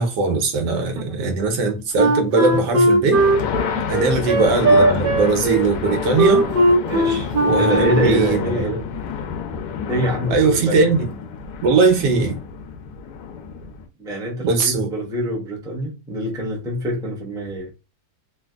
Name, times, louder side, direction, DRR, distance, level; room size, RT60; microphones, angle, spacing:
voice 1, 0.0-3.2 3.9-6.4 7.4-8.7 10.3-11.0 11.6-12.4 14.4-14.9, right 4 dB, 90° right, 1.4 m, -19 dB
voice 2, 1.0-1.3 4.0-4.1 6.4-6.5 6.8-8.9 9.9-11.1 14.0-17.7, right 1 dB, 5° right, 0.4 m, -26 dB
Wind instrument woodwind instrument, 2.0-8.3, right 2 dB, 60° right, 0.5 m, -18 dB
sound 1, 3.1-13.9, left 7 dB, 90° left, 1.2 m, -29 dB
3.2 x 2.5 x 2.4 m
omnidirectional pair, 1.8 m